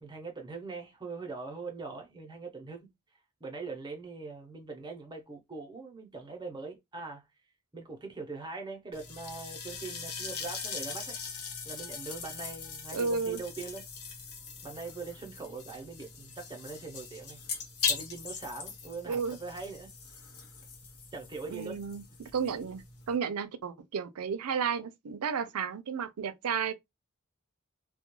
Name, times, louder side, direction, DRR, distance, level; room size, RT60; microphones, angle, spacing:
voice 1, 0.0-2.9 3.4-7.2 7.7-11.2 11.6-14.2 14.6-17.4 17.9-19.9 21.1-21.8, right 4 dB, 20° right, 0.7 m, -42 dB
sound 1, 8.9-23.2, left 6 dB, 80° left, 0.7 m, -40 dB
voice 2, 12.9-13.4 19.1-19.4 21.5-26.7, right 6 dB, 85° right, 0.4 m, -33 dB
2.3 x 2.2 x 2.9 m
head